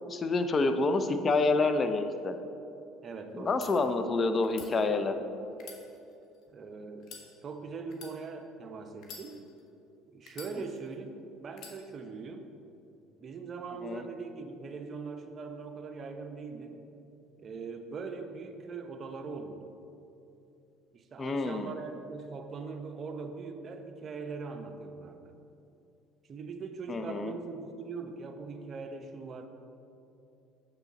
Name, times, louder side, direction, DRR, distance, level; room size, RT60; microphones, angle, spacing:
voice 1, 0.0-2.3 3.3-5.2 13.8-14.0 21.2-21.7 26.9-27.3, left 3 dB, 35° left, 8 dB, 0.5 m, -28 dB
voice 2, 3.0-3.7 6.5-7.1 7.4-9.4 10.1-12.5 13.2-16.8 17.4-19.7 20.9-25.4 26.3-29.5, right 4 dB, 40° right, 6 dB, 0.7 m, -41 dB
sound 1, 3.5-3.7 4.4-4.7 5.5-6.4 7.0-7.3 7.9-8.1 9.0-9.7 10.3-10.9 11.5-11.8, left 5 dB, 60° left, 1.1 m, -48 dB
6.9 x 6.9 x 4.0 m, 2.7 s
supercardioid pair, 80°, 0 cm